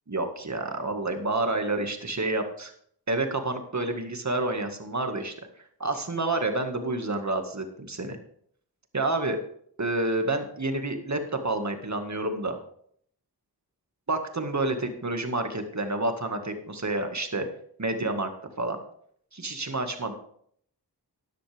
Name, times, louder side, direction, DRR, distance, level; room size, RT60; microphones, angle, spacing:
voice 1, 0.1-2.7 3.1-5.3 5.8-8.2 8.9-9.4 9.8-12.6 14.1-17.5 17.8-18.3 18.6-18.8 19.3-20.2, right 2 dB, 45° right, 6 dB, 1.9 m, -29 dB
13.0 x 10.5 x 3.5 m, 0.64 s
cardioid pair, 50°, 40 cm